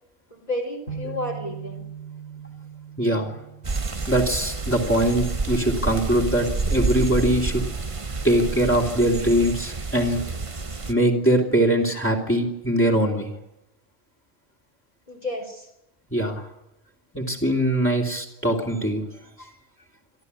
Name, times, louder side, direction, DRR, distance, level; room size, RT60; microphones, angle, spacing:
voice 1, 0.3-1.8 15.1-15.7, left 1 dB, 40° left, -1 dB, 3.8 m, -31 dB
sound 1, 0.9-4.9, right 7 dB, 85° left, 2.8 m, -40 dB
voice 2, 3.0-3.4 4.1-7.6 8.2-10.2 10.9-13.3 16.1-16.5 17.1-19.0 19.4-19.5, right 1 dB, 10° left, -1 dB, 3.1 m, -22 dB
sound 2, 3.6-10.9, right 3 dB, 30° right, 1.1 m, -29 dB
27.0 x 13.0 x 9.7 m, 0.88 s
omnidirectional pair, 1.1 m